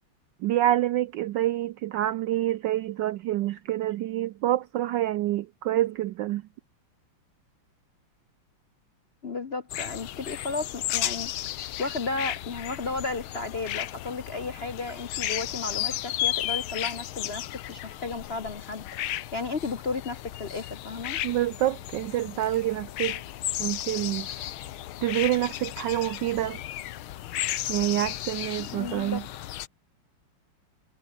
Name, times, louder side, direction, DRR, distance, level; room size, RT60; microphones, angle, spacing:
voice 1, 0.4-6.4 21.2-23.2 23.6-24.5 25.0-26.6 27.7-29.2, right 14 dB, 75° right, 1.0 m, -27 dB
voice 2, 9.2-17.4 17.7-21.2 28.7-29.2, left 3 dB, 45° left, 0.8 m, -34 dB
sound 1, 9.7-29.7, left 13 dB, 75° left, 1.7 m, -34 dB
omnidirectional pair, 2.4 m